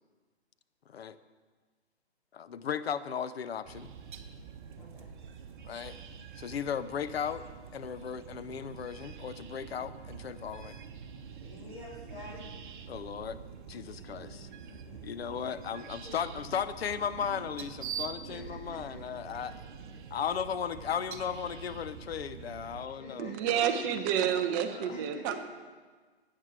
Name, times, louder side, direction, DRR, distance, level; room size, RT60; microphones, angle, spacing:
voice 1, 2.3-3.9 5.6-6.0 6.4-7.5 7.7-10.8 12.9-13.4 13.7-14.5 15.0-19.5 20.1-23.3 24.7-25.0, left 8 dB, 65° left, 13 dB, 0.7 m, -36 dB
sound 1, 3.6-22.9, right 7 dB, 50° right, 1.0 m, -45 dB
voice 2, 4.8-5.1 11.4-12.5 12.9-13.2 13.7-15.3 15.7-16.1 16.5-16.6 18.3-19.1 19.4-19.5 19.9-20.0 23.0-23.9 24.9-25.4, left 2 dB, 35° left, -10 dB, 4.1 m, -48 dB
voice 3, 23.2-25.3, right 9 dB, 15° right, 7 dB, 0.5 m, -29 dB
13.0 x 8.6 x 4.7 m, 1.4 s
hypercardioid pair, 135°, 33 cm